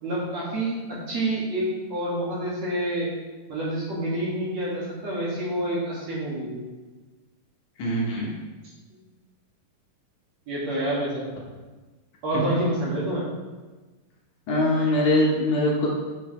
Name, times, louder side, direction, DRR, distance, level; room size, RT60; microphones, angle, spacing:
voice 1, 0.0-3.1 3.5-6.6 8.9-9.0 10.5-11.2 12.2-13.3, right 1 dB, 50° right, -7 dB, 3.4 m, -28 dB
voice 2, 7.8-8.3 14.5-15.9, left 1 dB, 65° left, -3 dB, 2.7 m, -22 dB
9.9 x 7.1 x 3.4 m, 1.3 s
omnidirectional pair, 3.9 m